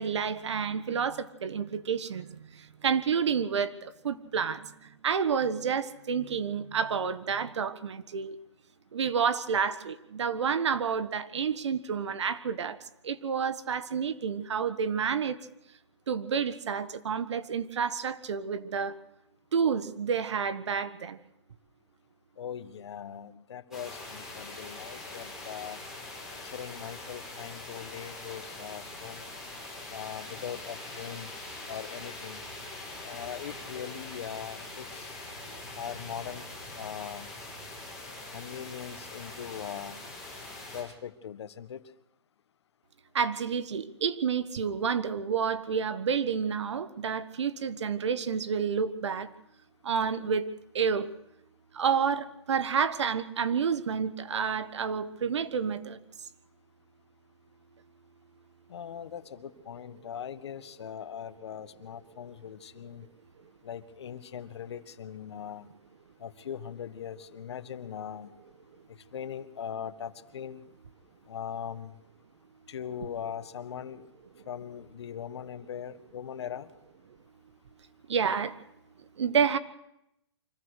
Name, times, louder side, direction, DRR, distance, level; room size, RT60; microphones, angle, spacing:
voice 1, 0.0-2.3 2.8-4.6 5.0-8.3 8.9-12.8 13.0-15.4 16.1-18.9 19.5-21.2 43.1-49.3 49.8-50.4 50.7-51.1 51.8-56.0 78.1-78.5 79.2-79.6, right 6 dB, 75° right, 13 dB, 1.5 m, -29 dB
voice 2, 22.4-25.8 26.4-29.3 29.9-31.3 31.7-32.4 33.0-35.1 35.7-36.5 36.8-37.3 38.3-40.0 40.7-41.8 58.7-63.1 63.6-65.7 66.2-68.3 69.1-70.6 71.3-71.9 72.7-74.0 74.5-76.7, left 8 dB, 70° left, 12 dB, 1.4 m, -40 dB
sound 1, 23.7-40.8, left 2 dB, 5° right, 7.9 m, -43 dB
25.5 x 16.0 x 6.5 m, 0.83 s
hypercardioid pair, 155°, 15 cm